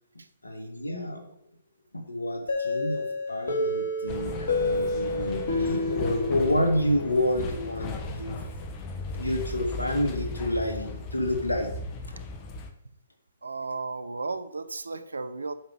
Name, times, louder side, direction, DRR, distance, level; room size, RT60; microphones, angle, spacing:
voice 1, 0.4-1.3 1.9-8.4 9.2-11.7, left 1 dB, 85° left, 3 dB, 2.1 m, -29 dB
sound 1, 2.5-7.2, left 2 dB, 60° left, 2.9 m, -29 dB
sound 2, 4.1-12.7, left 3 dB, 30° left, 1.3 m, -37 dB
voice 2, 13.4-15.5, right 3 dB, 75° right, 13 dB, 0.8 m, -34 dB
8.8 x 6.0 x 6.5 m, 0.70 s
figure-of-eight pair, 120°, 0 cm